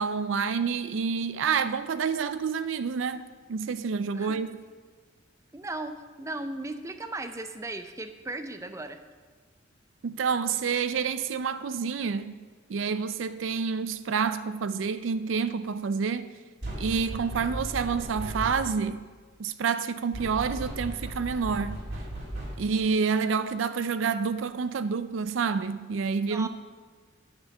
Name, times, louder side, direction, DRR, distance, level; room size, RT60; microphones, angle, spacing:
voice 1, 0.0-3.2 3.5-4.6 10.0-12.3 12.7-16.3 16.8-19.0 19.4-21.8 22.6-26.5, right 5 dB, 75° right, 0.4 m, -28 dB
voice 2, 5.5-9.0 26.3-26.5, right 2 dB, 15° right, 0.5 m, -36 dB
sound 1, 16.6-18.9 20.1-22.8, right 1 dB, 60° right, 2.9 m, -36 dB
9.1 x 7.3 x 6.6 m
head